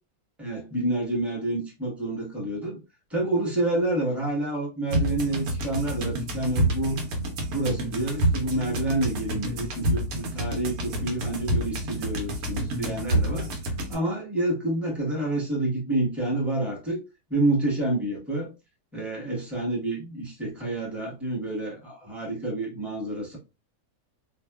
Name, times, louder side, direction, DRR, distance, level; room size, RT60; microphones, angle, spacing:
voice 1, 0.4-2.8 3.1-7.0 7.5-13.5 13.9-17.0 17.3-18.5 18.9-23.4, right 2 dB, ahead, 0.8 m, -28 dB
sound 1, 4.9-13.9, right 1 dB, 80° right, 1.1 m, -28 dB
2.7 x 2.3 x 2.2 m
omnidirectional pair, 1.6 m